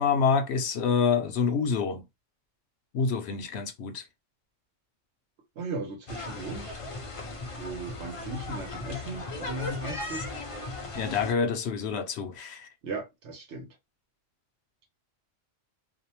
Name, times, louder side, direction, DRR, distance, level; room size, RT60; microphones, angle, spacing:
voice 1, 0.0-2.0 2.9-4.0 10.9-12.7, left 5 dB, 70° left, 0.8 m, -27 dB
voice 2, 5.6-6.8 7.6-10.3 12.8-13.7, right 2 dB, 70° right, 1.1 m, -37 dB
sound 1, 6.1-11.3, left 2 dB, 45° left, 0.4 m, -37 dB
2.6 x 2.1 x 2.8 m
omnidirectional pair, 1.2 m